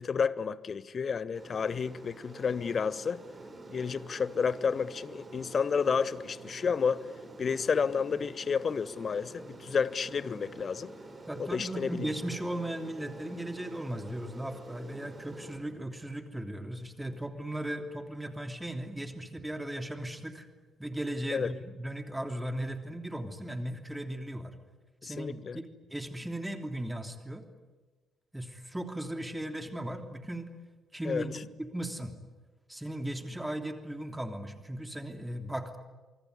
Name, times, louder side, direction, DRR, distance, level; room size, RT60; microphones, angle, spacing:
voice 1, 0.0-3.2 3.7-7.0 7.4-10.9 11.4-12.1 21.3-21.5 25.0-25.6 31.0-31.3, left 6 dB, 40° left, 0.9 m, -31 dB
Aircraft, 1.3-15.6, right 2 dB, 30° right, 4.8 m, -47 dB
voice 2, 11.3-20.5 20.8-24.5 25.0-27.4 28.3-30.5 30.9-32.1 32.7-35.8, right 1 dB, 10° right, 3.1 m, -37 dB
25.5 x 24.0 x 9.8 m
figure-of-eight pair, 40°, 0 cm